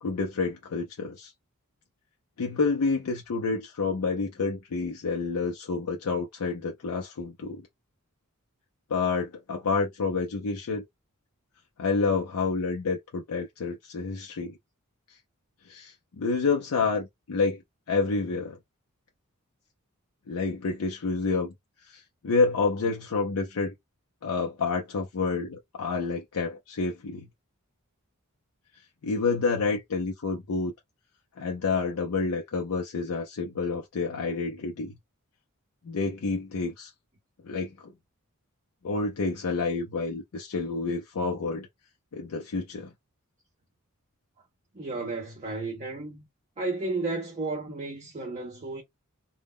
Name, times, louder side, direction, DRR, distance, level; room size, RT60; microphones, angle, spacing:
voice 1, 0.0-1.3 2.4-7.6 8.9-10.8 11.8-14.6 15.7-17.6 17.9-18.6 20.3-21.5 21.8-23.7 24.2-27.2 29.0-30.7 31.4-34.9 35.8-36.9 37.4-37.7 38.8-41.7 42.1-42.9, left 4 dB, 75° left, 0.5 m, -29 dB
voice 2, 44.8-46.3 46.6-48.8, right 3 dB, 30° right, 0.6 m, -33 dB
2.1 x 2.0 x 3.5 m
head